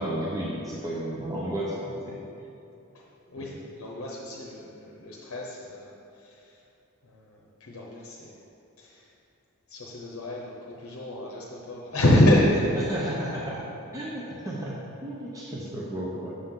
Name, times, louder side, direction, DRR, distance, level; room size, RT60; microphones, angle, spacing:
voice 1, 0.0-2.3 3.4-3.5 12.9-13.6 13.9-16.4, right 1 dB, 15° right, -6 dB, 0.7 m, -33 dB
voice 2, 2.9-6.6 7.0-8.4 8.8-9.1 9.7-12.9, left 1 dB, 65° left, -3 dB, 0.8 m, -27 dB
7.5 x 6.5 x 3.7 m, 2.8 s
head